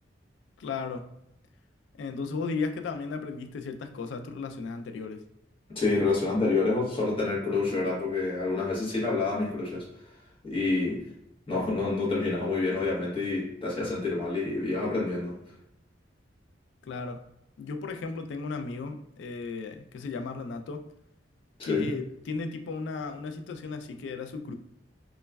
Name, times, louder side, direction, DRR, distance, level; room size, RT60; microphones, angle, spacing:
voice 1, 0.6-1.1 2.0-5.2 16.9-17.2 17.6-20.8 21.6-24.5, left 4 dB, 85° left, 7 dB, 0.3 m, -35 dB
voice 2, 5.7-9.9 10.4-11.0 11.5-15.4 21.6-21.9, left 3 dB, 30° left, -6 dB, 1.0 m, -28 dB
3.0 x 2.2 x 2.2 m, 0.82 s
head